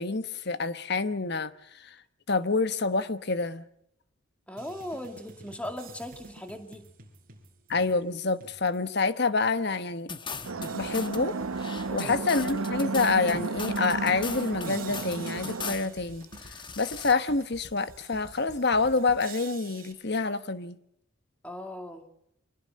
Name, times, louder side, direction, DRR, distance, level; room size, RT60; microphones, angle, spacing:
voice 1, 0.0-2.0 2.3-3.6 7.7-10.1 10.7-11.4 11.9-20.8, left 3 dB, 50° left, 1.2 m, -27 dB
voice 2, 4.5-6.9 11.8-12.2 21.4-22.0, left 1 dB, 5° left, 2.3 m, -38 dB
sound 1, 4.6-9.0 9.4-9.5 10.3-19.9, right 3 dB, 45° right, 4.1 m, -49 dB
sound 2, 10.1-11.2 11.6-15.9 16.2-17.1, left 5 dB, 20° left, 1.2 m, -39 dB
sound 3, 10.4-15.7, right 4 dB, 90° right, 0.9 m, -33 dB
25.0 x 19.5 x 6.6 m
head